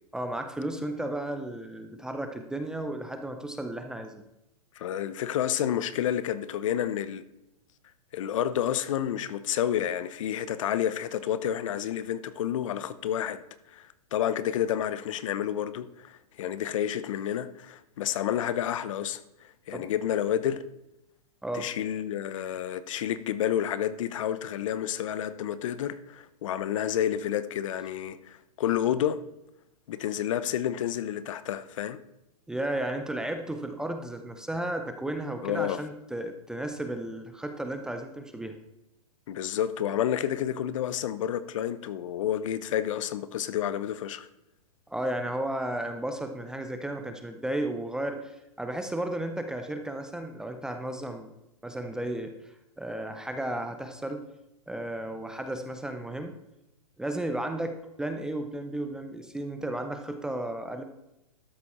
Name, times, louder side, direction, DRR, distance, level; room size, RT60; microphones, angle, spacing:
voice 1, 0.1-4.2 19.7-19.9 21.4-21.7 32.5-38.6 44.9-51.3 51.6-54.3 54.7-56.3 57.0-60.8, right 1 dB, 5° right, 0.5 m, -34 dB
voice 2, 4.8-7.3 8.1-13.4 13.7-20.6 21.5-29.2 29.9-32.0 35.4-35.8 39.3-44.3, left 10 dB, 55° left, 0.8 m, -30 dB
13.0 x 6.8 x 4.3 m
hypercardioid pair, 150°, 19 cm